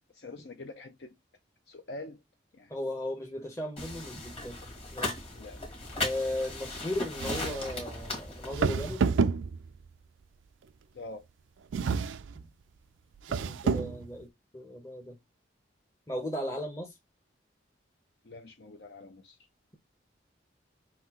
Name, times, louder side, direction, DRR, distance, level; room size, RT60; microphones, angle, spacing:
voice 1, 0.1-1.2 1.7-2.2 2.5-2.7 5.3-5.6 10.9-11.3 18.2-19.4, left 2 dB, 60° left, 0.6 m, -45 dB
voice 2, 2.7-4.6 4.9-5.3 5.9-9.0 12.3-12.5 13.3-15.2 16.1-17.0, left 1 dB, 15° left, 0.8 m, -36 dB
sound 1, 3.8-8.9, left 2 dB, 30° left, 1.6 m, -37 dB
sound 2, 7.2-7.8 8.5-9.9 11.7-12.5 13.2-14.1, right 5 dB, 85° right, 0.4 m, -29 dB
5.9 x 2.7 x 2.9 m
head